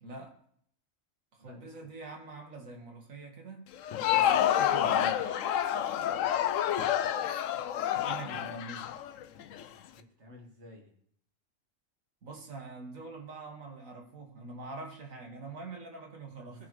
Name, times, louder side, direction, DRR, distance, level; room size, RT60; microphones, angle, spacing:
voice 1, 0.0-0.3 1.3-3.7 4.1-5.5 7.9-8.9 12.2-16.7, right 3 dB, 75° right, 1 dB, 2.1 m, -44 dB
voice 2, 1.4-1.9 8.3-8.6 9.9-10.9 16.4-16.7, left 1 dB, 55° right, 0 dB, 2.1 m, -54 dB
Crowd, 3.7-9.6, left 10 dB, 75° left, 0.9 m, -28 dB
16.5 x 6.1 x 3.2 m, 0.67 s
omnidirectional pair, 1.4 m